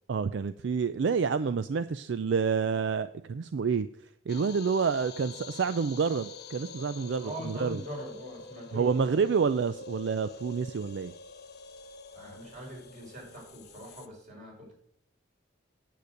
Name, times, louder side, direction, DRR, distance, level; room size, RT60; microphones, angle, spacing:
voice 1, 0.1-3.9 4.3-7.8 8.7-11.1, right 5 dB, 65° right, 13 dB, 0.4 m, -28 dB
sound 1, 4.3-14.1, left 4 dB, 60° left, 1.1 m, -47 dB
voice 2, 7.2-9.2 12.1-14.7, equal, 40° right, -2 dB, 5.2 m, -42 dB
9.3 x 8.4 x 6.5 m, 0.66 s
head